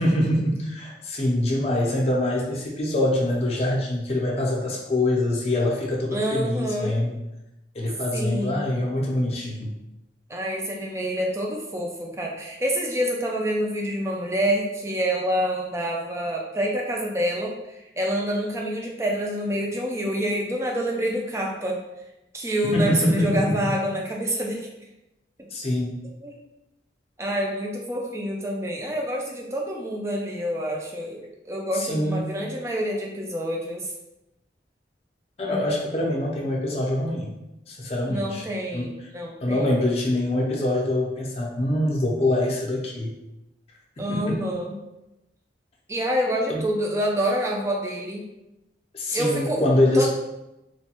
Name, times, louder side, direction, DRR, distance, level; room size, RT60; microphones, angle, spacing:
voice 1, 0.0-7.1 7.7-9.7 22.7-23.7 25.5-26.0 31.7-32.3 35.4-37.3 37.7-38.4 38.7-38.9 39.4-43.1 44.0-44.4 46.5-46.6 48.9-50.1, left 1 dB, 35° left, -2 dB, 0.6 m, -24 dB
voice 2, 6.1-7.0 8.1-8.7 10.3-21.8 22.3-24.7 26.2-26.4 27.2-33.9 38.1-39.7 44.0-44.8 45.9-48.2 49.1-49.6 49.9-50.1, equal, 15° right, 0 dB, 0.4 m, -27 dB
3.0 x 2.2 x 2.9 m, 0.93 s
head